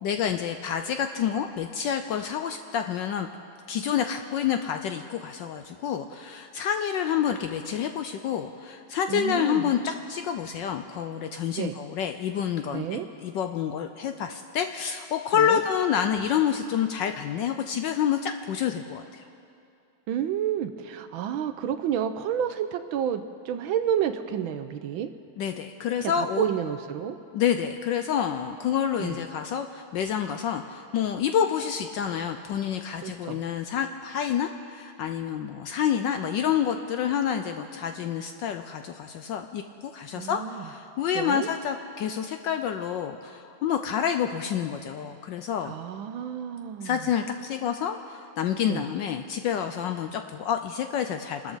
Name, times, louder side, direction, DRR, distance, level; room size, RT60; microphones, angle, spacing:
voice 1, 0.0-3.3 3.7-19.2 25.4-26.5 27.3-45.7 46.8-51.6, left 8 dB, 75° left, 7 dB, 1.1 m, -28 dB
voice 2, 9.1-9.7 11.5-11.8 12.7-13.1 15.4-15.6 20.1-25.1 26.0-27.2 29.0-29.2 33.0-33.4 40.1-40.7 41.1-41.5 45.6-47.1 48.7-48.8, right 9 dB, 75° right, 9 dB, 1.3 m, -30 dB
27.5 x 13.0 x 4.0 m, 2.5 s
omnidirectional pair, 2.4 m